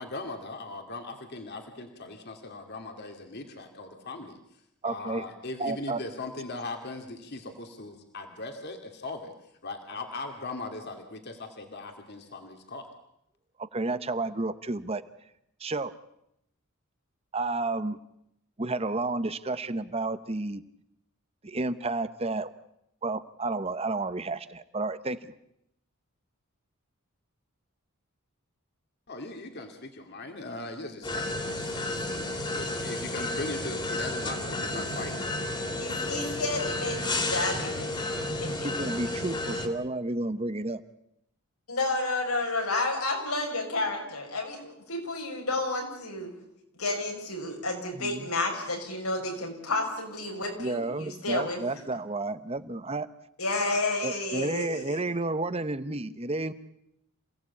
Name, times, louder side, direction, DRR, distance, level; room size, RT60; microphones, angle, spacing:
voice 1, 0.0-4.4 4.8-9.3 9.6-12.9 29.1-35.1 35.5-36.1, left 2 dB, 50° left, 5 dB, 2.3 m, -39 dB
voice 2, 4.8-5.3 5.6-6.0 13.7-15.0 15.6-15.9 17.3-18.0 18.6-20.6 21.4-22.5 23.0-25.3 38.0-40.8 47.9-48.3 50.6-53.1 54.0-56.5, right 2 dB, 30° right, 13 dB, 0.9 m, -31 dB
sound 1, 31.0-39.7, left 2 dB, 20° left, 2.9 m, -32 dB
voice 3, 35.8-38.5 41.7-46.3 46.8-51.8 53.4-55.0, left 2 dB, 85° left, 2 dB, 6.7 m, -31 dB
27.5 x 17.5 x 8.5 m, 0.80 s
head